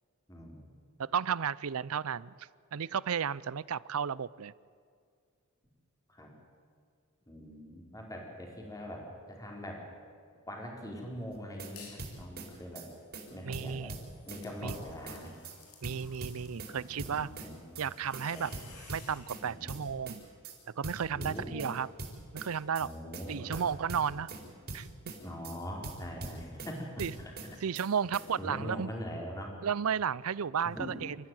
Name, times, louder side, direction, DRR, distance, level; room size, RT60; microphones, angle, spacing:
voice 1, 0.3-0.7 6.1-6.3 7.3-9.8 10.5-12.9 13.3-13.9 14.3-15.3 16.5-17.9 18.3-18.4 19.4-19.7 21.1-21.7 22.8-23.6 24.1-24.5 25.2-26.9 27.2-27.3 28.4-29.5 30.7-30.9, equal, 15° left, 0 dB, 4.1 m, -42 dB
voice 2, 1.0-2.3 2.7-4.5 13.4-13.9 14.6-14.7 15.8-17.3 17.8-18.5 18.9-20.2 20.8-21.9 22.3-22.9 23.3-24.3 24.7-24.9 27.0-27.1 27.6-28.9 29.6-31.2, right 7 dB, 75° right, 21 dB, 0.5 m, -33 dB
sound 1, 11.3-11.7 12.0-12.5 12.8-12.9 13.1-13.3 13.5-14.4 14.7-15.2 15.4-15.6 15.8-16.7 17.0-17.5 17.8-17.9 18.1-18.3 18.5-19.4 19.7-20.2 20.4-20.6 20.8-21.7 22.0-22.5 22.8-22.9 23.1-23.3 23.5-24.4 24.7-25.2 25.4-25.6 25.8-26.7 27.0-27.5 27.8-27.9 28.1-28.3, right 3 dB, 45° right, 4.6 m, -42 dB
sound 2, 11.8-12.1 12.5-19.3, left 5 dB, 90° left, 4.2 m, -56 dB
26.5 x 14.5 x 9.2 m, 2.2 s
head